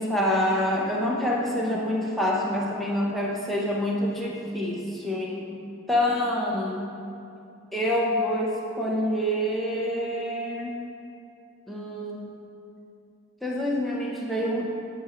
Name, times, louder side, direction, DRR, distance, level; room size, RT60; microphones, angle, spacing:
voice 1, 0.0-5.5 5.9-6.9 7.7-10.8 11.7-12.3 13.4-14.7, left 1 dB, ahead, -4 dB, 0.7 m, -27 dB
8.5 x 4.4 x 4.9 m, 2.6 s
head